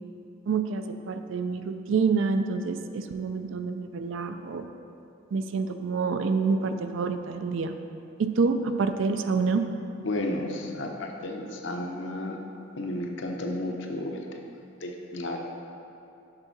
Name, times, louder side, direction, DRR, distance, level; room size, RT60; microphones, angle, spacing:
voice 1, 0.5-4.7 5.3-7.8 8.2-9.6, right 4 dB, 70° right, 8 dB, 0.4 m, -27 dB
voice 2, 10.0-12.4 12.8-14.2 14.8-15.4, left 1 dB, 65° left, 2 dB, 0.7 m, -32 dB
6.8 x 3.6 x 5.8 m, 2.8 s
head